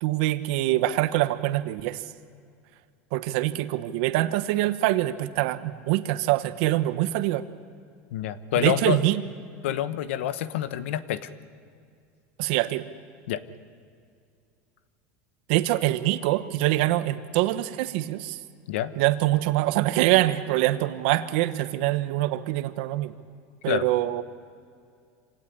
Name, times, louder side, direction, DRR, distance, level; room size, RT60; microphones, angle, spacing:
voice 1, 0.0-2.0 3.1-7.5 8.6-9.2 12.4-12.9 15.5-18.4 19.0-23.1 23.6-24.2, right 15 dB, 65° right, 12 dB, 1.1 m, -24 dB
voice 2, 8.1-9.0 9.6-11.3 13.3-13.4 18.7-18.9 23.7-23.9, left 11 dB, 85° left, 13 dB, 1.2 m, -27 dB
26.0 x 17.5 x 9.9 m, 2.3 s
supercardioid pair, 155°, 6 cm